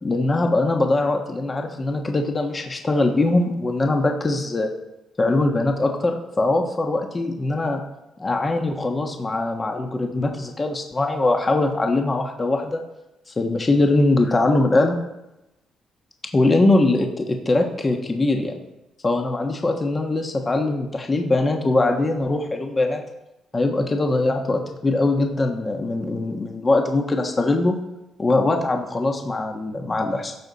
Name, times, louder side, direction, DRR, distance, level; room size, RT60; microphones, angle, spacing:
voice 1, 0.0-4.7 5.2-7.8 8.2-12.8 13.3-14.9 16.3-18.6 19.0-23.0 23.5-27.8 28.2-30.3, left 2 dB, 25° left, 3 dB, 1.3 m, -21 dB
15.0 x 6.3 x 4.1 m, 0.94 s
cardioid pair, 90°, 0 cm